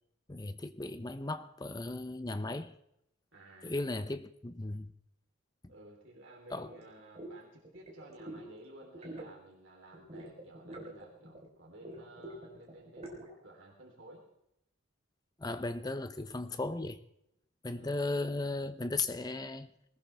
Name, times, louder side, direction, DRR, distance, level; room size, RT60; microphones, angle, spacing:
voice 1, 0.3-2.7 3.6-4.9 5.6-5.7 6.5-6.7 15.4-17.0 17.6-19.7, left 2 dB, 20° left, 0.6 m, -36 dB
voice 2, 3.3-3.8 5.7-14.2 17.7-18.0, right 1 dB, 60° right, 3.5 m, -54 dB
sound 1, 6.7-6.8 7.2-7.3 7.6-8.5 8.8-9.3 9.9-11.5 11.8-13.3, right 1 dB, 30° right, 3.9 m, -46 dB
20.5 x 19.0 x 3.4 m
head